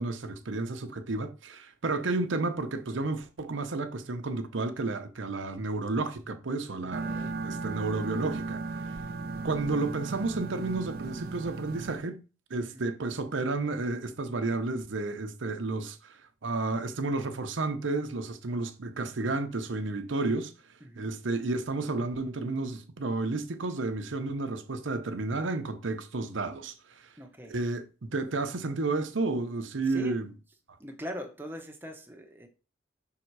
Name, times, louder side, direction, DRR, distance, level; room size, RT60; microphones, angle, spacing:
voice 1, 0.0-8.9 9.4-12.2 12.5-20.5 21.0-27.1 27.5-30.3, right 3 dB, 80° right, 0.8 m, -32 dB
voice 2, 6.8-7.4 9.2-9.5 12.6-12.8 20.8-21.1 27.2-27.5 29.9-30.2 30.8-32.5, equal, 10° right, 0.9 m, -42 dB
sound 1, 6.9-12.0, right 3 dB, 50° right, 0.5 m, -36 dB
5.6 x 3.7 x 4.6 m
head